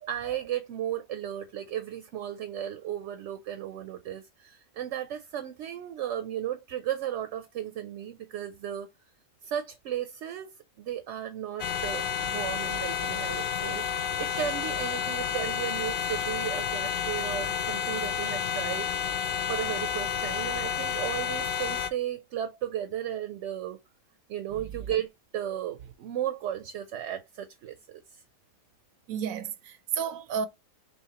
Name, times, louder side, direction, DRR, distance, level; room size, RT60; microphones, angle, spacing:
voice 1, 0.1-8.9 9.4-10.5 10.8-18.9 19.5-23.8 24.3-28.2, right 11 dB, 70° right, 0.8 m, -35 dB
sound 1, 11.6-21.9, left 7 dB, 70° left, 0.5 m, -30 dB
voice 2, 29.1-30.5, right 7 dB, 90° right, 1.1 m, -32 dB
4.9 x 3.0 x 2.8 m
omnidirectional pair, 1.4 m